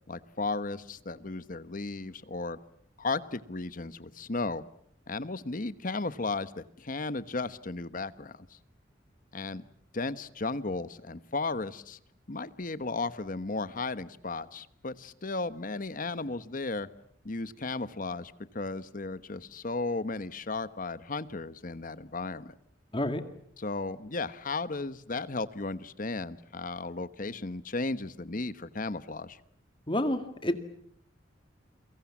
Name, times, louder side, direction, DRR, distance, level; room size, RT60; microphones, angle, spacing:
voice 1, 0.1-2.6 3.0-4.6 5.1-8.6 9.3-9.6 9.9-12.0 12.3-16.9 17.2-22.5 23.6-29.4, left 3 dB, 45° left, 14 dB, 1.1 m, -35 dB
voice 2, 29.9-30.6, left 1 dB, 25° left, 9 dB, 2.1 m, -29 dB
30.0 x 24.0 x 7.3 m, 0.67 s
head